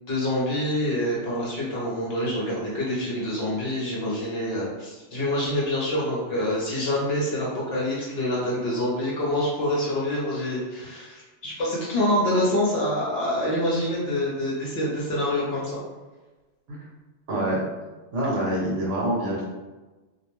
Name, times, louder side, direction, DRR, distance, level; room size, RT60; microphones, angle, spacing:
voice 1, 0.1-15.8, left 1 dB, 55° left, -5 dB, 0.8 m, -26 dB
voice 2, 17.3-17.6 18.1-19.4, right 1 dB, 65° right, -4 dB, 1.1 m, -25 dB
2.4 x 2.1 x 3.0 m, 1.2 s
omnidirectional pair, 1.4 m